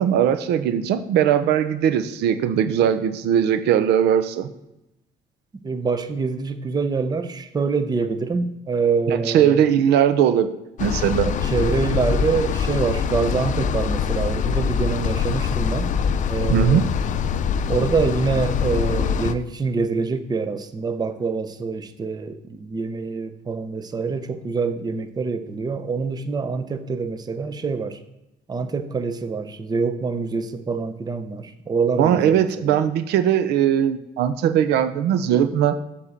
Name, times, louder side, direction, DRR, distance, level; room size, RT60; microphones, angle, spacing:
voice 1, 0.0-4.5 9.1-10.5 10.8-11.3 16.5-16.8 32.0-35.8, right 9 dB, 80° right, 10 dB, 0.7 m, -19 dB
voice 2, 5.6-9.6 11.4-15.9 16.3-16.9 17.7-28.0 28.5-32.8, right 4 dB, 25° right, 9 dB, 0.7 m, -25 dB
sound 1, 10.8-19.3, left 7 dB, 45° left, 0.5 m, -24 dB
7.2 x 4.3 x 6.7 m, 0.91 s
cardioid pair, 110°, 17 cm